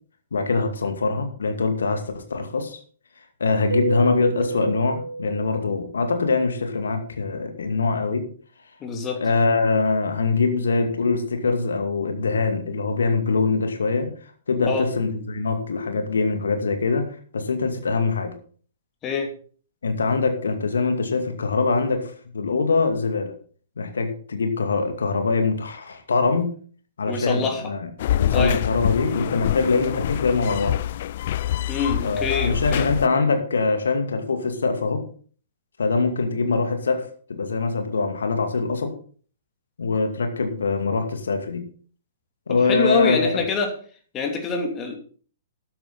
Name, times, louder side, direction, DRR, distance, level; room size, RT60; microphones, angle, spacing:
voice 1, 0.3-2.8 3.4-8.3 9.2-14.1 14.5-17.1 17.3-18.3 19.8-23.3 23.8-26.5 27.0-27.9 28.2-30.8 32.0-35.0 35.8-37.0 37.3-38.9 39.8-41.7 42.5-43.4, left 4 dB, 65° left, 6 dB, 2.3 m, -23 dB
Keyboard (musical), 3.7-6.2, right 2 dB, 80° right, 0.4 m, -29 dB
voice 2, 8.8-9.2 14.6-14.9 19.0-19.3 27.1-27.6 28.3-28.6 31.7-32.9 42.5-43.7 44.1-45.0, left 5 dB, 20° left, 3 dB, 3.0 m, -25 dB
sound 1, 28.0-33.1, left 11 dB, 45° left, 0.5 m, -25 dB
13.0 x 10.5 x 4.1 m, 0.43 s
figure-of-eight pair, 115°, 0 cm